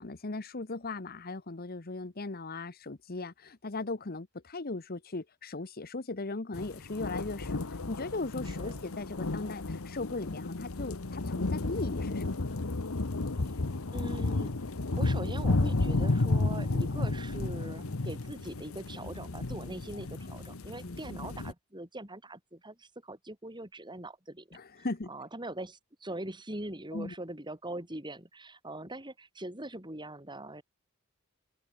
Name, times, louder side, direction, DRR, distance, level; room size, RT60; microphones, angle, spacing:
voice 1, 0.0-12.7 20.2-20.4 20.8-21.0 24.5-25.1 26.9-27.1, left 3 dB, 45° left, 1.1 m, -38 dB
sound 1, 6.5-21.5, left 2 dB, 90° left, 1.1 m, -32 dB
voice 2, 8.5-8.8 13.9-30.6, right 1 dB, 20° right, 7.0 m, -42 dB
open air
head